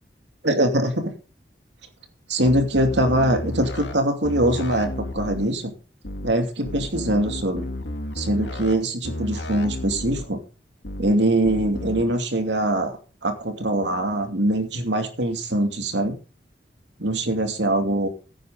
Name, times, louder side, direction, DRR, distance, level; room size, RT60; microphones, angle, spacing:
voice 1, 0.4-1.1 2.3-5.7 6.2-7.7 8.2-10.4 11.0-16.2 17.0-18.1, right 1 dB, 80° right, 6 dB, 2.6 m, -23 dB
sound 1, 2.4-3.9 4.2-5.4 6.0-6.3 6.6-8.7 9.0-10.2 10.8-11.1 11.4-12.0, left 1 dB, 80° left, 2.0 m, -32 dB
16.0 x 9.2 x 3.9 m, 0.33 s
head